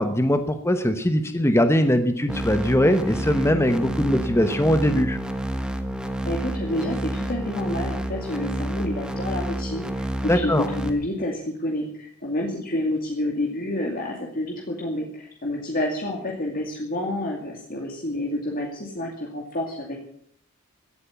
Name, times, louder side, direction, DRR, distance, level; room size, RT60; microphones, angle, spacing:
voice 1, 0.0-5.2 10.3-10.7, equal, 10° left, 8 dB, 1.0 m, -21 dB
sound 1, 2.3-10.9, equal, 5° right, 1.5 m, -29 dB
voice 2, 6.3-10.1 10.3-20.0, left 1 dB, 45° left, 0 dB, 2.4 m, -29 dB
16.0 x 8.9 x 9.1 m, 0.65 s
head